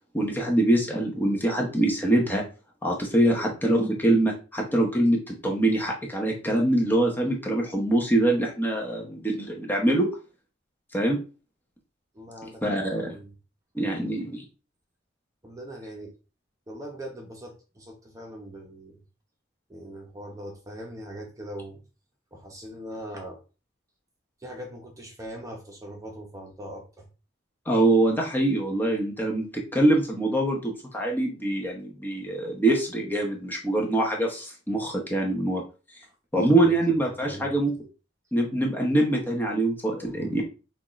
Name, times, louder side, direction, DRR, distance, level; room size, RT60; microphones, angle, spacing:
voice 1, 0.1-2.4 2.8-10.1 10.9-11.2 12.6-13.2 13.7-14.4 27.7-35.6 36.3-37.7 38.3-40.4, right 1 dB, 10° left, -1 dB, 0.9 m, -24 dB
voice 2, 3.2-3.5 8.9-9.2 12.1-12.6 13.0-13.3 13.7-14.2 15.4-16.1 16.7-19.0 19.7-21.8 22.3-23.4 24.4-27.1 36.6-36.8 37.0-37.5 39.9-40.4, right 1 dB, 15° right, 1 dB, 0.8 m, -41 dB
6.4 x 2.5 x 3.1 m, 0.33 s
head